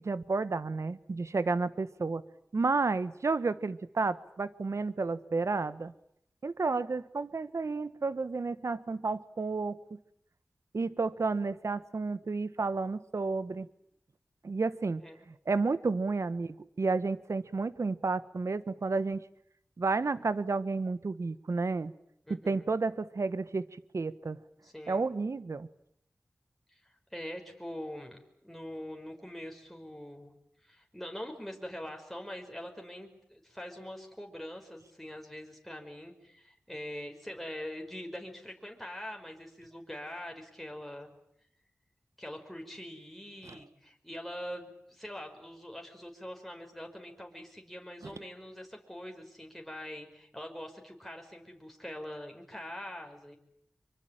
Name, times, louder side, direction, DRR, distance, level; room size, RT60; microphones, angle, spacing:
voice 1, 0.0-2.2 2.5-5.9 6.4-10.0 10.7-13.7 14.4-15.0 15.5-19.2 19.8-21.9 22.3-23.7 23.9-24.4 24.9-25.7 43.4-43.6 48.0-48.1, right 3 dB, 65° right, 15 dB, 1.3 m, -31 dB
voice 2, 22.3-22.7 24.6-25.1 26.7-30.3 30.6-41.1 42.2-53.4, left 1 dB, 5° left, 2 dB, 5.4 m, -43 dB
25.0 x 24.0 x 9.0 m, 0.71 s
cardioid pair, 40°, 5 cm